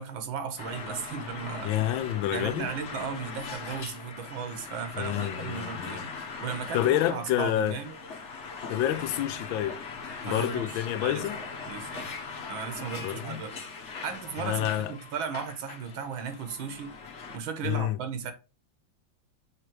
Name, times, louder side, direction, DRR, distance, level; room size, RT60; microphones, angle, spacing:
voice 1, 0.0-1.8 2.3-6.1 6.4-7.9 10.2-11.3 11.7-12.1 12.5-13.6 14.0-17.0 17.3-18.3, right 6 dB, 85° right, 1.8 m, -36 dB
sound 1, 0.6-17.4, left 4 dB, 50° left, 0.9 m, -40 dB
voice 2, 1.6-2.7 5.0-6.0 6.7-7.8 8.7-9.8 10.2-11.4 13.0-13.4 14.4-14.9 17.6-18.0, left 12 dB, 90° left, 1.4 m, -28 dB
6.5 x 3.4 x 4.6 m
omnidirectional pair, 2.1 m